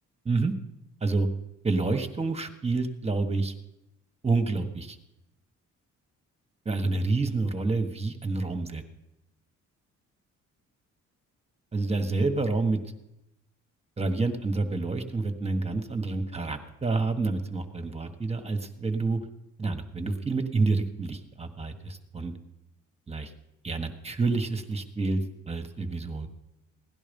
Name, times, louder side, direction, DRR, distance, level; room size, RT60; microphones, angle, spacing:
voice 1, 1.6-3.5 4.2-5.0 6.6-8.8 11.7-12.8 14.0-19.2 19.6-22.3 23.1-23.3 23.6-26.3, right 3 dB, 20° right, 6 dB, 1.5 m, -28 dB
17.0 x 11.0 x 5.4 m, 0.90 s
cardioid pair, 90°, 30 cm